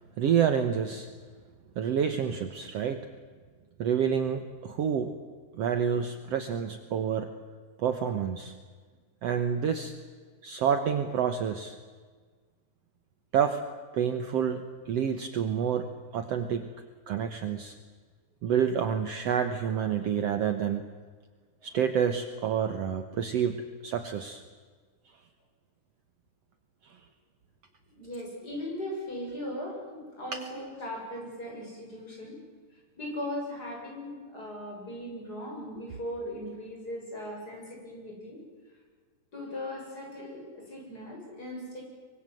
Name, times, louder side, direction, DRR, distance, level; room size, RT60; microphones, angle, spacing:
voice 1, 0.2-1.1 1.8-3.0 3.8-5.1 5.5-7.3 7.8-8.5 9.2-9.9 10.4-11.8 13.3-13.6 13.9-16.7 17.1-17.8 18.4-20.8 21.6-24.4 30.3-30.4, right 8 dB, 60° right, 8 dB, 1.9 m, -28 dB
voice 2, 28.0-32.4 32.7-38.4 39.3-41.8, left 1 dB, 30° left, -1 dB, 7.8 m, -38 dB
24.5 x 24.0 x 7.8 m, 1.5 s
omnidirectional pair, 3.6 m